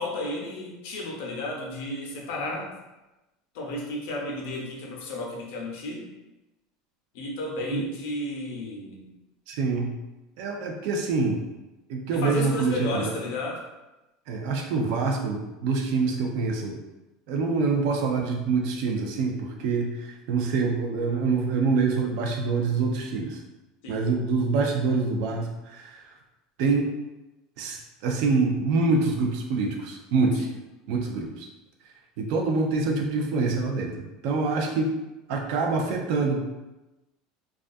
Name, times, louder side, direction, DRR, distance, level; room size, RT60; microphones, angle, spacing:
voice 1, 0.0-2.7 3.5-6.1 7.1-9.1 12.1-13.7 23.8-24.0 30.4-30.5, left 2 dB, 70° left, -1 dB, 0.6 m, -33 dB
voice 2, 9.5-9.9 10.4-11.4 11.9-13.1 14.3-16.8 17.3-23.4 23.9-26.0 26.6-26.9 27.6-30.5 30.9-31.5 32.2-34.9 35.3-36.4, right 4 dB, 60° right, 1 dB, 0.4 m, -26 dB
2.4 x 2.2 x 2.5 m, 1.0 s
supercardioid pair, 150°, 0 cm